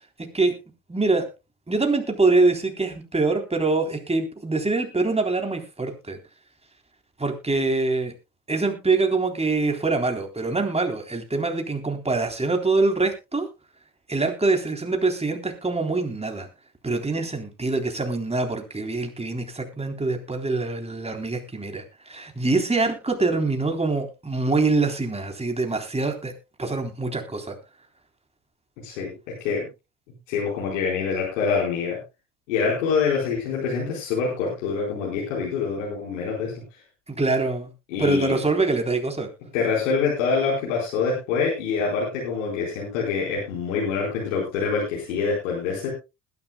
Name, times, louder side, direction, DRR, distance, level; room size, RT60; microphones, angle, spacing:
voice 1, 0.9-1.3 1.7-6.2 7.2-8.1 8.5-13.5 14.1-16.5 16.8-26.3 26.6-27.5 37.1-37.7 38.0-39.3, right 3 dB, 15° right, 5 dB, 3.7 m, -24 dB
voice 2, 28.8-29.7 30.3-32.0 32.5-36.8 37.9-38.3 39.5-45.9, left 5 dB, 80° left, -3 dB, 4.6 m, -25 dB
20.5 x 11.0 x 2.3 m, 0.26 s
hypercardioid pair, 55°, 38 cm